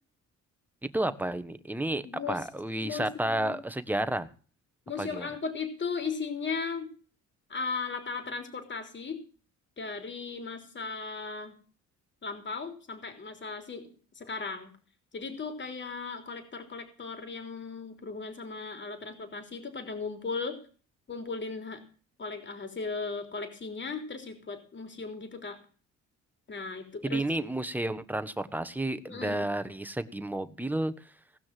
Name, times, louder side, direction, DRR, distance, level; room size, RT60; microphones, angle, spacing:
voice 1, 0.9-4.3 5.0-5.3 27.0-30.9, right 1 dB, 5° right, 11 dB, 1.2 m, -31 dB
voice 2, 2.0-2.4 2.8-3.6 4.9-6.9 7.5-9.2 9.8-11.5 12.2-14.7 15.1-20.6 21.1-21.8 22.2-25.6 26.5-27.2 29.1-29.5, left 4 dB, 40° left, 6 dB, 3.5 m, -37 dB
18.0 x 6.1 x 7.6 m, 0.40 s
cardioid pair, 90°, 30 cm